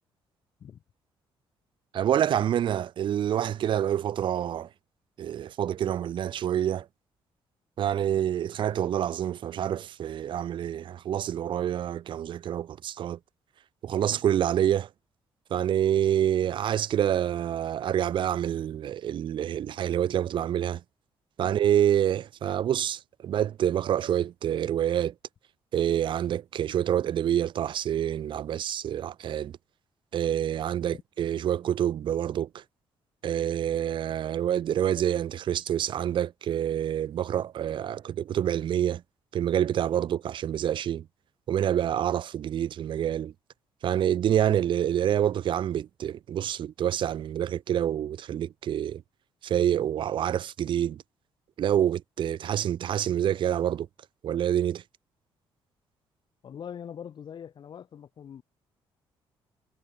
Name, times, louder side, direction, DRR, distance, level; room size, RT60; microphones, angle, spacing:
voice 1, 1.9-4.7 5.2-6.9 7.8-13.2 13.8-14.9 15.5-20.8 21.4-25.1 25.7-29.5 30.1-32.6 33.2-39.0 39.3-41.0 41.5-43.3 43.8-49.0 49.4-51.0 51.6-53.9 54.2-54.8, right 10 dB, 60° right, 1.0 m, -27 dB
voice 2, 56.4-58.4, left 8 dB, 55° left, 6.3 m, -42 dB
cardioid pair, 110°, 9 cm